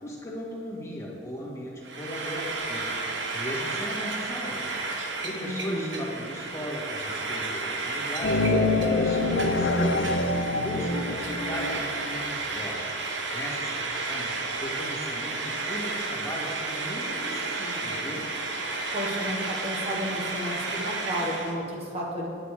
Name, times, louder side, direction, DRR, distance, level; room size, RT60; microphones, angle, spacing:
voice 1, 0.0-4.6 5.0-10.1 10.5-13.0 13.3-14.3 14.6-18.2, equal, 15° left, -4 dB, 1.9 m, -37 dB
Frying (food), 1.8-21.6, right 3 dB, 85° right, 1.1 m, -32 dB
voice 2, 5.4-6.0 18.9-22.3, equal, 35° right, -2 dB, 1.5 m, -32 dB
sound 1, 8.2-12.1, left 2 dB, 70° left, 0.7 m, -25 dB
10.0 x 9.1 x 4.9 m, 2.3 s
head